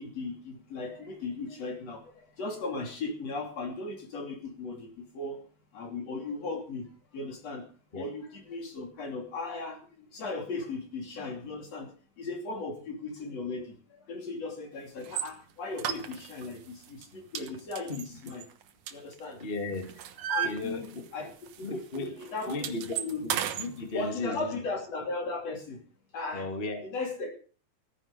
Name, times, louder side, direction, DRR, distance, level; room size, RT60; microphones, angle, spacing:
voice 1, 0.0-5.4 5.7-7.7 7.9-18.5 18.9-19.4 20.3-23.3 23.9-25.8 26.1-26.5 26.8-27.3, left 3 dB, 45° left, 3 dB, 3.9 m, -37 dB
sound 1, 15.0-15.3 15.8-16.5 16.8-17.1 17.4-19.4 19.7-21.2 21.5-21.7 21.9-23.7, right 10 dB, 65° right, 2.3 m, -34 dB
voice 2, 19.4-19.8 20.4-21.0 21.6-22.1 22.5-23.0 23.6-24.6 26.3-26.8, left 2 dB, 20° left, 5 dB, 1.6 m, -35 dB
16.0 x 9.9 x 6.7 m, 0.39 s
omnidirectional pair, 4.3 m